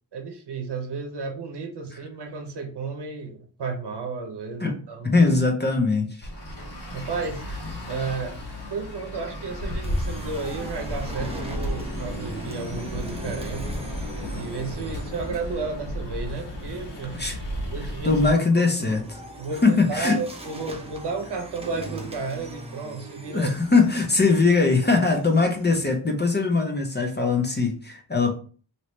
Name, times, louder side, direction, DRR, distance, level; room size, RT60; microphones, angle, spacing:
voice 1, 0.1-5.2 6.9-7.5 7.9-8.4 8.7-14.1 14.3-17.3 17.7-18.2 19.4-23.5, right 4 dB, 65° right, 0.8 m, -33 dB
voice 2, 5.0-6.3 17.1-17.4 18.0-19.2 19.6-20.2 23.3-28.3, left 3 dB, 25° left, 0.6 m, -21 dB
Traffic noise roadway noise, 6.2-18.3, equal, 65° left, 1.5 m, -33 dB
sound 1, 9.8-15.6 18.7-26.0, right 1 dB, 15° right, 0.7 m, -41 dB
3.1 x 2.8 x 3.0 m
wide cardioid pair, 130°, 44 cm